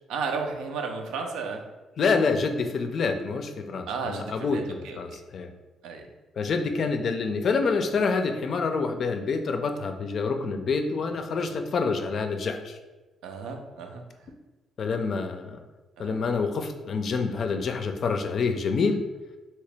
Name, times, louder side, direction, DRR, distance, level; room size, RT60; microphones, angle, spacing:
voice 1, 0.1-1.6 3.9-5.0 5.8-6.0 13.2-14.0 16.0-16.2, right 4 dB, 90° right, 3 dB, 0.5 m, -33 dB
voice 2, 2.0-5.5 6.4-12.8 14.8-15.6 16.0-19.0, left 4 dB, 55° left, 6 dB, 0.4 m, -27 dB
2.9 x 2.8 x 3.3 m, 1.2 s
cardioid pair, 90°, 0 cm